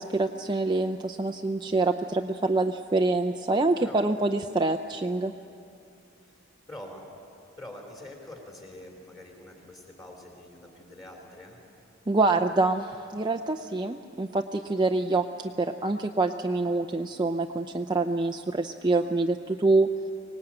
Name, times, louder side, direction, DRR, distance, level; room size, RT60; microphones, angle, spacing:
voice 1, 0.0-5.3 12.1-19.9, right 2 dB, 20° right, 5 dB, 0.5 m, -26 dB
voice 2, 3.8-4.1 6.3-6.4 6.7-7.0 7.6-11.6, left 1 dB, 20° left, 0 dB, 3.4 m, -45 dB
24.5 x 19.5 x 8.8 m, 2.5 s
head